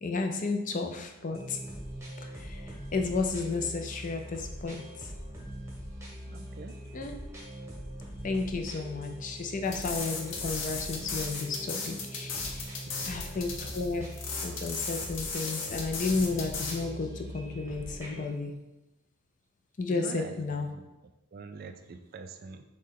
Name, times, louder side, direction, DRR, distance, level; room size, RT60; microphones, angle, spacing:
voice 1, 0.0-1.6 2.2-5.1 6.9-7.2 8.2-12.7 13.1-14.1 14.4-18.5 19.8-20.7, left 3 dB, 40° left, 4 dB, 0.4 m, -33 dB
sound 1, 1.3-18.3, equal, 15° right, 0.9 m, -42 dB
voice 2, 6.3-6.8 12.9-13.1 19.9-20.8 21.3-22.6, right 4 dB, 45° right, 8 dB, 0.3 m, -44 dB
sound 2, 9.7-16.8, left 4 dB, 60° left, 0.8 m, -36 dB
6.3 x 2.2 x 3.7 m, 0.97 s
head